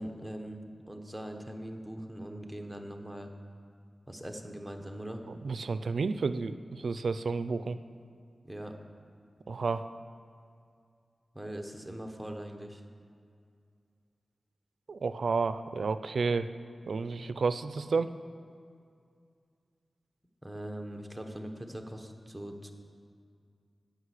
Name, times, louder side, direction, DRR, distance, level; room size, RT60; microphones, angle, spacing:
voice 1, 0.0-3.3 4.1-5.2 8.4-8.7 11.3-12.8 20.4-22.7, right 1 dB, 5° right, 4 dB, 1.1 m, -41 dB
voice 2, 5.3-7.8 9.5-9.9 14.9-16.5 16.8-18.1, right 4 dB, 75° right, 12 dB, 0.4 m, -31 dB
9.8 x 6.3 x 8.2 m, 2.3 s
wide cardioid pair, 70°, 0 cm